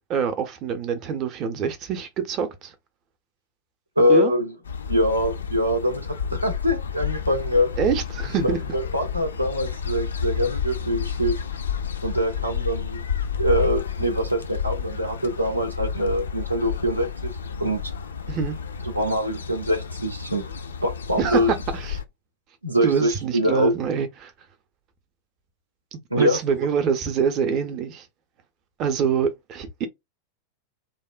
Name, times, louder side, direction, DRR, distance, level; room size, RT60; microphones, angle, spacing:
voice 1, 0.1-2.7 4.1-4.3 7.8-8.6 18.3-18.6 21.2-22.0 22.8-24.3 25.9-28.1 28.8-29.9, right 7 dB, 35° right, 0.5 m, -25 dB
voice 2, 4.0-4.5 4.9-7.7 8.4-11.4 12.0-13.0 13.4-17.3 17.6-17.8 18.9-20.4 20.8-21.5 22.6-23.7 26.1-26.4, equal, 85° right, 0.5 m, -23 dB
sound 1, 4.6-22.0, left 7 dB, 70° left, 0.3 m, -30 dB
2.8 x 2.1 x 2.3 m
figure-of-eight pair, 90°, 0 cm